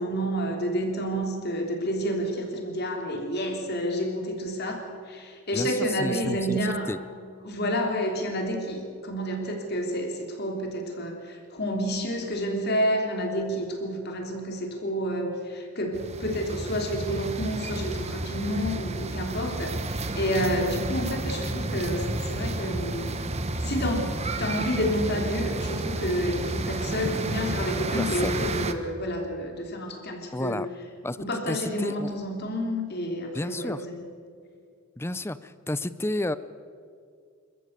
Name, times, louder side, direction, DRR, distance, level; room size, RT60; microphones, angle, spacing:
voice 1, 0.0-6.9 7.4-23.2 23.6-30.6 31.2-34.0, equal, 45° left, 2 dB, 3.3 m, -29 dB
voice 2, 5.5-7.0 28.0-28.4 30.3-30.7 31.0-31.2 31.5-32.1 33.3-33.8 35.0-36.4, left 1 dB, 10° left, 15 dB, 0.5 m, -31 dB
sound 1, 15.9-28.7, right 2 dB, 30° right, 1.0 m, -31 dB
26.5 x 14.0 x 8.2 m, 2.2 s
head